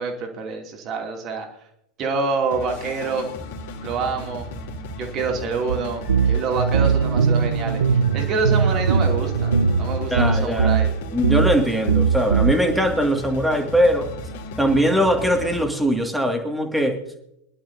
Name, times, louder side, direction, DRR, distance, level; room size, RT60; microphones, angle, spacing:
voice 1, 0.0-1.5 2.0-3.3 3.8-4.5 5.0-10.9, right 4 dB, 35° right, 3 dB, 2.6 m, -27 dB
sound 1, 2.5-15.7, left 1 dB, 55° left, 3.0 m, -35 dB
sound 2, 5.7-5.8 6.1-10.9 11.2-11.6 11.9-12.5, right 6 dB, 65° right, 0.6 m, -20 dB
voice 2, 10.1-10.7 11.1-14.1 14.6-17.0, equal, ahead, 4 dB, 2.1 m, -21 dB
23.0 x 11.5 x 2.7 m, 0.80 s
figure-of-eight pair, 90°, 0 cm